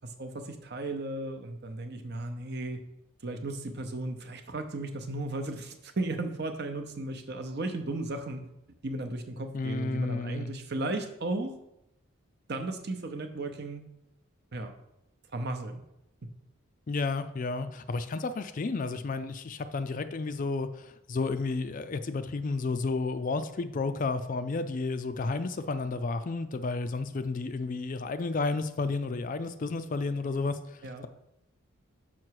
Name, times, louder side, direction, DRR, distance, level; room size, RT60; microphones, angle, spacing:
voice 1, 0.2-2.8 3.2-8.4 8.8-11.5 12.5-13.8 14.5-14.7 15.3-15.8 30.8-31.1, right 2 dB, 50° right, 6 dB, 0.7 m, -35 dB
voice 2, 9.5-10.5 16.9-31.1, left 3 dB, 40° left, 10 dB, 0.4 m, -32 dB
6.1 x 5.8 x 4.7 m, 0.86 s
head